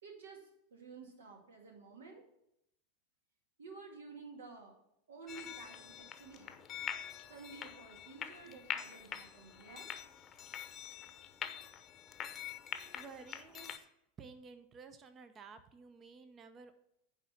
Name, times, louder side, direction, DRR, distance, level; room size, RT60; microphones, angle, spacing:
voice 1, 0.0-2.2 3.6-4.7 5.1-6.6 7.3-10.0, right 4 dB, 70° right, 1 dB, 2.1 m, -52 dB
sound 1, 5.3-13.8, left 8 dB, 30° left, 0.8 m, -45 dB
voice 2, 12.6-13.9 14.2-16.8, right 5 dB, 30° right, 10 dB, 0.7 m, -53 dB
9.8 x 3.7 x 7.0 m, 0.79 s
figure-of-eight pair, 85°, 0 cm